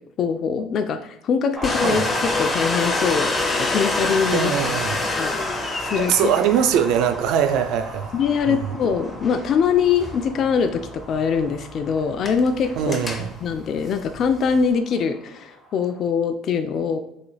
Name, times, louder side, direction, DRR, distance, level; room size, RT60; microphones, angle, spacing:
voice 1, 0.2-3.3 3.6-4.5 5.2-5.4 5.8-6.3 8.1-17.0, left 6 dB, 55° left, 7 dB, 0.3 m, -23 dB
sound 1, 1.5-16.0, right 1 dB, 15° right, 1.2 m, -37 dB
Domestic sounds home sounds, 1.6-14.7, left 2 dB, 25° left, 0.7 m, -28 dB
voice 2, 4.3-5.0 6.0-8.1 8.5-8.7 12.8-13.3, right 8 dB, 70° right, 9 dB, 0.3 m, -21 dB
3.9 x 3.1 x 2.3 m, 0.79 s
hypercardioid pair, 75°, 0 cm